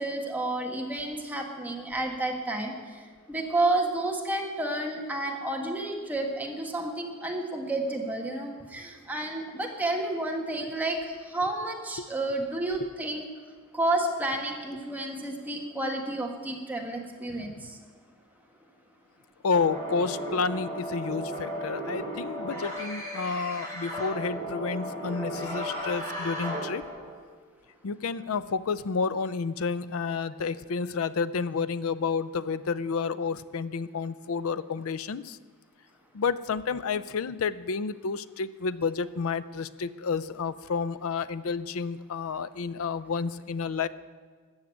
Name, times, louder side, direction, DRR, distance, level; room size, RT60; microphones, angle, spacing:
voice 1, 0.0-2.7 3.3-13.3 13.7-17.6, right 2 dB, 10° right, 1 dB, 1.5 m, -30 dB
voice 2, 17.4-17.7 19.4-26.8 27.8-35.4 36.1-43.9, left 5 dB, 70° left, 16 dB, 0.5 m, -30 dB
sound 1, 19.5-27.2, equal, 10° left, 4.0 m, -35 dB
14.5 x 6.5 x 9.2 m, 1.5 s
head